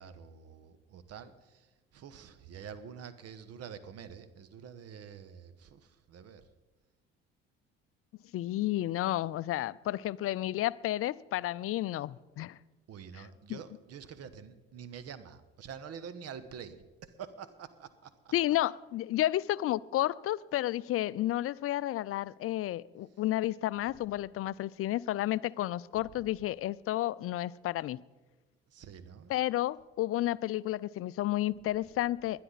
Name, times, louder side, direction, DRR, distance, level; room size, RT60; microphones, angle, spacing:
voice 1, 0.0-6.5 12.9-18.3 25.9-26.3 28.7-29.3, right 7 dB, 50° right, 1.3 m, -47 dB
voice 2, 8.3-12.6 13.5-13.6 18.3-28.0 29.3-32.4, left 14 dB, 45° left, 0.5 m, -31 dB
20.5 x 11.5 x 4.1 m
hypercardioid pair, 60°, 30 cm